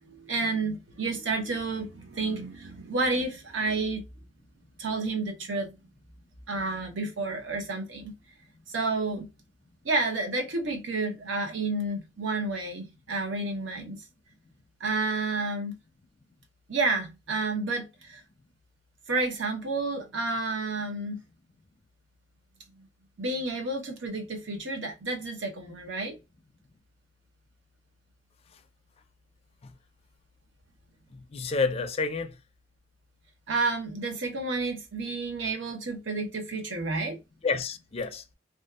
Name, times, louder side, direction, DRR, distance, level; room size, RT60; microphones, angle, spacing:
voice 1, 0.1-4.0 4.8-5.7 6.5-8.1 8.7-9.3 9.8-14.0 14.8-15.8 16.7-18.2 19.1-21.2 23.2-26.2 33.5-37.2, right 3 dB, 65° right, 0.8 m, -30 dB
voice 2, 31.1-32.4 37.4-38.2, left 4 dB, 30° left, 0.4 m, -29 dB
2.6 x 2.3 x 2.3 m
head